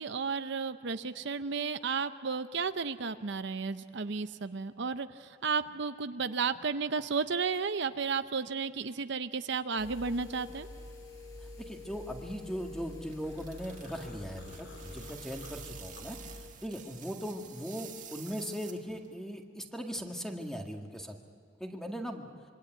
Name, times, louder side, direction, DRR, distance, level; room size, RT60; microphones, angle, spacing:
voice 1, 0.0-10.7, right 5 dB, 65° right, 10 dB, 0.7 m, -33 dB
sound 1, 9.8-16.5, left 2 dB, 20° left, 7.3 m, -47 dB
voice 2, 11.6-16.2 16.6-21.2 21.6-22.3, equal, 5° left, 2 dB, 1.9 m, -39 dB
sound 2, 12.8-19.1, right 9 dB, 45° right, 2.0 m, -50 dB
sound 3, 13.2-16.8 17.2-18.7, left 2 dB, 70° left, 4.0 m, -55 dB
26.5 x 23.5 x 9.1 m, 2.5 s
head